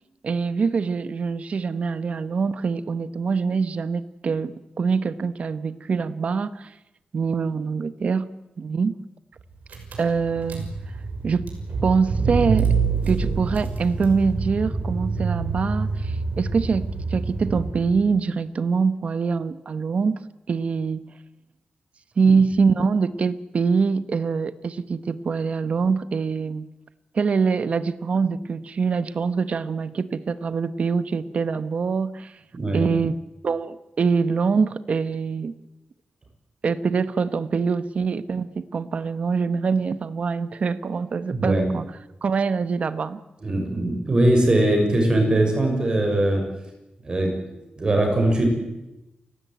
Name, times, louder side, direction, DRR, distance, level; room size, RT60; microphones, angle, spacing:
voice 1, 0.2-6.7 7.1-8.3 8.6-8.9 10.0-10.7 11.2-11.5 11.8-12.7 13.1-20.2 20.5-21.1 22.2-26.7 27.1-32.3 32.7-33.2 33.4-35.5 36.6-41.8 42.2-43.2, right 5 dB, 50° right, 13 dB, 0.9 m, -24 dB
Car / Engine, 9.4-9.5 9.7-18.1, right 4 dB, 75° right, 6.2 m, -26 dB
voice 2, 32.5-32.9 41.3-41.6 43.4-46.4 47.0-48.5, right 1 dB, 30° right, 3 dB, 6.3 m, -21 dB
29.5 x 16.0 x 9.2 m, 0.98 s
wide cardioid pair, 135°, 3 cm